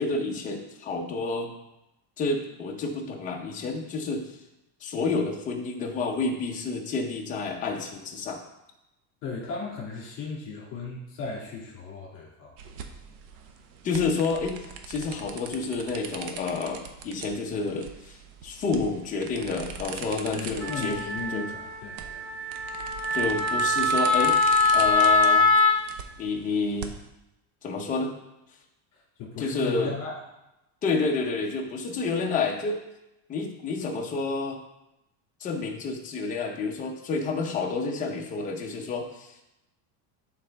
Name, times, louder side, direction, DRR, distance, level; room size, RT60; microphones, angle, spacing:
voice 1, 0.0-1.5 2.2-4.3 4.8-8.4 13.8-18.2 18.4-21.0 21.3-21.5 23.1-24.4 24.7-25.5 26.2-26.9 27.6-28.1 29.4-29.9 30.8-32.8 33.3-34.6 35.4-39.3, left 4 dB, 15° left, 0 dB, 0.6 m, -29 dB
voice 2, 9.2-12.5 20.3-22.3 28.9-30.1, left 4 dB, 40° left, -4 dB, 2.3 m, -36 dB
sound 1, 12.6-27.1, right 6 dB, 85° right, 1.0 m, -42 dB
Wind instrument woodwind instrument, 20.6-25.8, left 3 dB, 50° right, 2.5 m, -23 dB
11.0 x 4.0 x 3.4 m, 0.89 s
cardioid pair, 175°, 50 cm